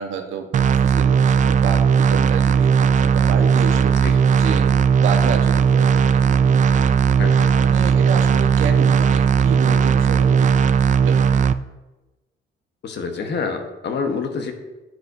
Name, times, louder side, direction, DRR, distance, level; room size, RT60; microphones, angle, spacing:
voice 1, 0.0-6.8 7.6-11.4, right 6 dB, 85° right, 4 dB, 1.2 m, -30 dB
sound 1, 0.5-11.5, right 6 dB, 40° right, 0.4 m, -17 dB
voice 2, 7.1-7.5 12.8-14.5, left 5 dB, 60° left, 5 dB, 1.3 m, -27 dB
9.7 x 9.3 x 2.7 m, 1.1 s
cardioid pair, 90°, 20 cm